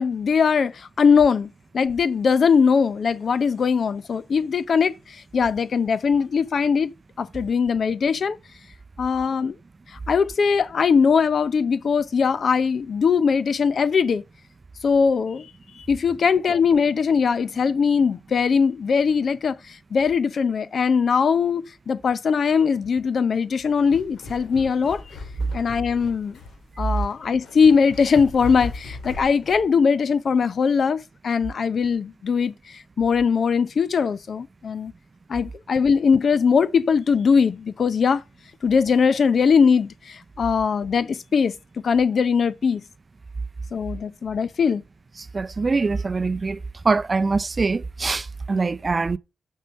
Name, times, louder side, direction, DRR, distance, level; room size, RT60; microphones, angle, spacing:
voice 1, 0.0-1.5 1.7-6.9 7.2-8.4 9.0-9.5 10.1-14.2 14.8-15.5 15.8-25.0 25.5-26.4 26.8-34.9 35.3-38.2 38.6-41.5 41.8-42.8 43.7-44.8, left 6 dB, 60° left, 0.6 m, -21 dB
sound 1, 23.6-29.7, left 2 dB, 85° left, 2.6 m, -38 dB
voice 2, 45.3-46.6 46.8-49.2, right 4 dB, 35° right, 0.5 m, -23 dB
6.7 x 5.6 x 6.5 m
cardioid pair, 80°, 0 cm